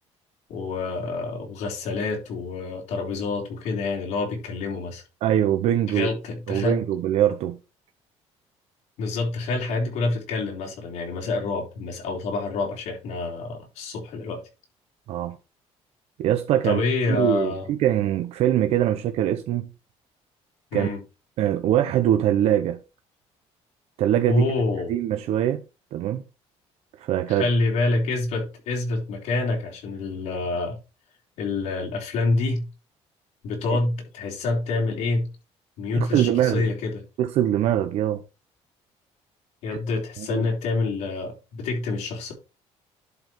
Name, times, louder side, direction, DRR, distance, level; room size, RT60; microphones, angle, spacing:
voice 1, 0.5-5.0 5.9-6.8 9.0-14.4 16.6-17.7 20.7-21.0 24.3-24.9 27.3-30.8 31.4-32.7 33.4-35.3 35.8-37.0 39.6-42.3, left 3 dB, 85° left, 3.8 m, -27 dB
voice 2, 5.2-6.1 6.5-7.6 15.1-15.4 16.2-16.8 17.1-19.7 20.7-20.9 21.4-22.8 24.0-24.4 24.9-25.6 25.9-26.2 27.0-27.5 33.7-33.8 35.9-36.6 37.2-38.2 39.7-39.8 40.3-40.4, right 11 dB, 65° right, 0.7 m, -22 dB
11.0 x 4.6 x 4.4 m
cardioid pair, 175°, 12 cm